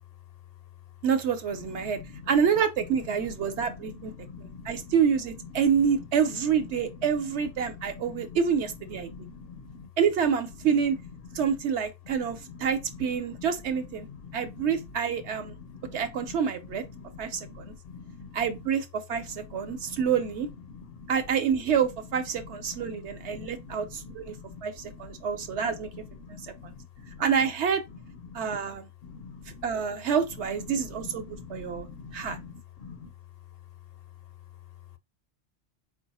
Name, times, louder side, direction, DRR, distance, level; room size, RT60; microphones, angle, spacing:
voice 1, 1.0-2.0 2.3-4.1 4.4-9.1 10.0-11.0 11.3-14.1 14.3-15.5 15.9-16.8 17.2-17.7 18.3-20.5 21.1-24.4 24.6-25.9 26.3-26.7 27.2-27.8 28.3-28.9 29.6-31.9 32.1-32.4, right 7 dB, 75° right, 1.0 m, -27 dB
voice 2, 3.9-4.8 8.1-8.2 9.1-9.9 13.4-13.5 14.3-14.5 15.7-16.0 17.0-17.1 17.3-18.3 19.7-20.0 21.0-21.1 22.8-23.0 23.4-23.8 24.4-24.6 26.2-26.8 27.0-27.2 28.3-28.5 29.0-29.6 31.3-32.5 32.8-33.1, left 5 dB, 65° left, 0.7 m, -44 dB
4.6 x 2.4 x 4.1 m
omnidirectional pair, 1.2 m